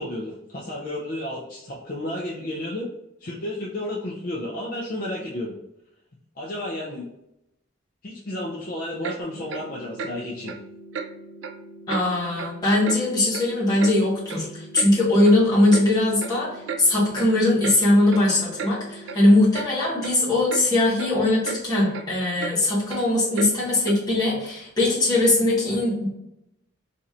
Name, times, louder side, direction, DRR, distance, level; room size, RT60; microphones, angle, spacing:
voice 1, 0.0-2.9 3.2-5.6 6.4-7.1 8.0-10.5, left 1 dB, 45° left, -4 dB, 0.5 m, -32 dB
Clock, 9.0-9.2 9.5-9.7 10.0-10.1 10.5-10.6 10.9-11.1 11.4-11.6 11.9-12.0 12.4-12.5 12.9-13.0 13.3-14.0 14.3-14.4 14.7-14.9 15.2-15.4 15.7-15.9 16.2-16.3 16.7-16.8 17.2-17.3 17.6-17.8 18.1-18.2 18.6-18.7 19.1-19.2 19.5-19.7 20.0-20.2 20.5-20.6 21.0-21.1 21.4-21.6 21.9-22.0 22.4-22.5 22.9-23.0 23.4-23.5 23.9-24.0, right 5 dB, 65° right, 0.3 m, -33 dB
sound 1, 9.2-19.2, equal, 65° left, 1.1 m, -45 dB
voice 2, 11.9-26.1, left 2 dB, 20° left, -8 dB, 1.3 m, -20 dB
4.2 x 2.8 x 2.5 m, 0.85 s
head